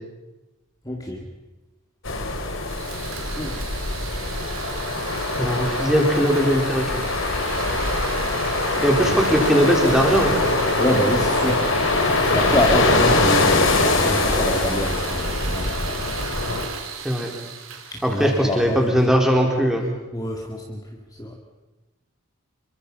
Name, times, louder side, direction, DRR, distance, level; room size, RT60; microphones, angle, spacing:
voice 1, 0.8-1.2 3.2-3.6 10.8-11.7 12.3-15.8 17.9-18.8 20.1-21.4, equal, 15° left, 0 dB, 2.2 m, -26 dB
sound 1, 2.1-16.7, left 2 dB, 60° left, 3.3 m, -23 dB
sound 2, 2.6-18.8, right 5 dB, 75° right, 3.5 m, -34 dB
voice 2, 5.4-7.0 8.8-10.4 17.0-17.3 18.0-19.9, equal, ahead, 0 dB, 4.1 m, -20 dB
28.0 x 23.5 x 5.6 m, 1.1 s
head